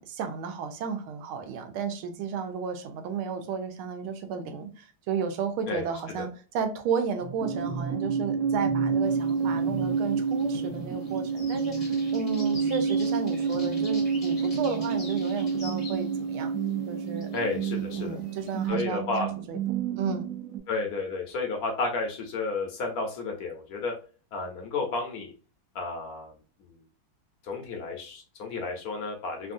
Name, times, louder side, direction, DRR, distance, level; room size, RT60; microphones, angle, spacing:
voice 1, 0.0-16.5 16.9-17.3 18.0-19.0 19.5-19.6 20.0-20.3, right 6 dB, 80° right, 6 dB, 1.4 m, -33 dB
sound 1, 7.2-20.6, right 5 dB, 65° right, 0.9 m, -29 dB
sound 2, 9.0-18.7, left 2 dB, 30° left, 0.6 m, -48 dB
voice 2, 17.3-18.2 18.7-19.3 20.7-23.9 24.3-25.3 25.7-26.3 26.6-26.7 27.4-29.5, left 3 dB, 65° left, 2 dB, 0.9 m, -32 dB
3.5 x 2.4 x 2.5 m, 0.37 s
omnidirectional pair, 2.3 m